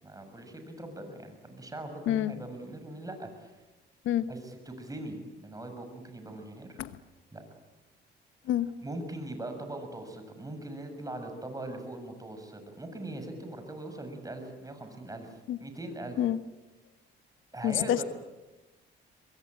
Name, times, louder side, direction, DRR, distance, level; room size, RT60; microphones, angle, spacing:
voice 1, 0.0-3.5 4.2-6.8 7.3-7.4 8.8-15.3 15.6-16.2 17.5-18.1, right 1 dB, 15° right, 6 dB, 6.8 m, -41 dB
voice 2, 17.6-18.0, left 11 dB, 85° left, 13 dB, 1.1 m, -27 dB
25.0 x 22.0 x 9.0 m, 1.1 s
cardioid pair, 90°, 20 cm